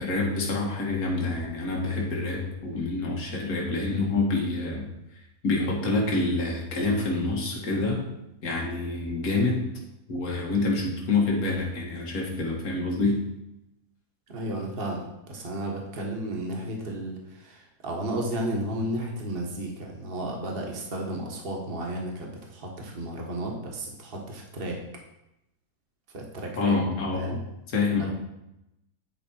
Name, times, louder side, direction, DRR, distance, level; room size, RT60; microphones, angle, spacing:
voice 1, 0.0-4.9 5.4-8.0 8.4-9.6 10.1-13.2 26.6-27.3 27.7-28.1, left 3 dB, 65° left, -2 dB, 2.1 m, -27 dB
voice 2, 14.3-24.8 26.1-26.8 27.1-27.4 28.0-28.1, right 1 dB, 35° right, 0 dB, 1.5 m, -33 dB
9.7 x 5.0 x 4.4 m, 0.89 s
omnidirectional pair, 1.7 m